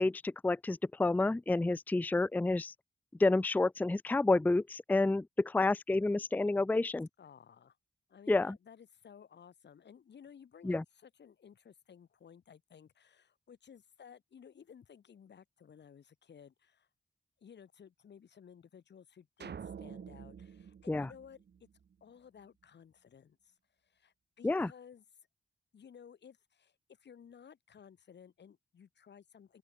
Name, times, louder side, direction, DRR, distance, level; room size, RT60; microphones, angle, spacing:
voice 1, 0.0-2.7 3.2-7.1 8.3-8.6 10.6-10.8 20.9-21.1 24.4-24.7, left 2 dB, 10° left, 0.4 m, -29 dB
voice 2, 7.2-7.8 8.1-16.9 17.4-21.7 22.0-23.6 23.8-25.0 25.7-29.6, left 7 dB, 85° left, 2.2 m, -56 dB
sound 1, 19.4-21.9, right 7 dB, 75° right, 1.6 m, -48 dB
open air
cardioid pair, 65°, 17 cm